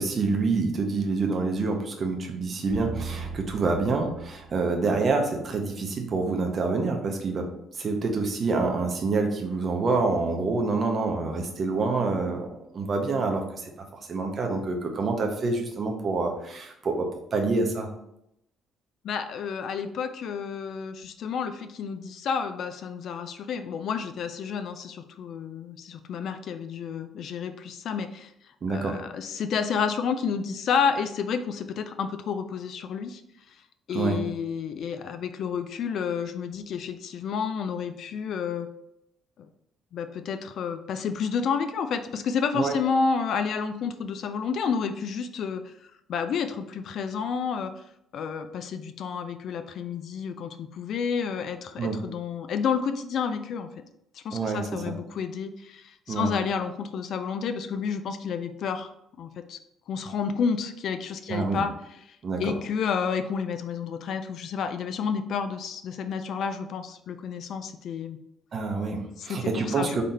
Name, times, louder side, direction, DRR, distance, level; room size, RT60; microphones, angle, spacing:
voice 1, 0.0-7.5 7.7-12.5 12.7-17.9 28.6-29.0 33.9-34.2 42.5-42.7 51.8-52.0 54.3-54.9 56.1-56.3 61.3-61.6 62.2-62.5 68.5-70.0, right 3 dB, 30° right, 3 dB, 0.7 m, -27 dB
sound 1, 2.7-5.4, right 5 dB, 85° right, 0.6 m, -38 dB
voice 2, 19.0-28.3 28.7-33.2 33.9-38.7 39.9-47.7 48.1-53.7 54.1-58.9 59.2-59.6 59.9-61.7 62.1-68.2 69.2-70.0, left 6 dB, 50° left, 9 dB, 0.3 m, -30 dB
3.9 x 3.3 x 4.1 m, 0.80 s
cardioid pair, 165°, 0 cm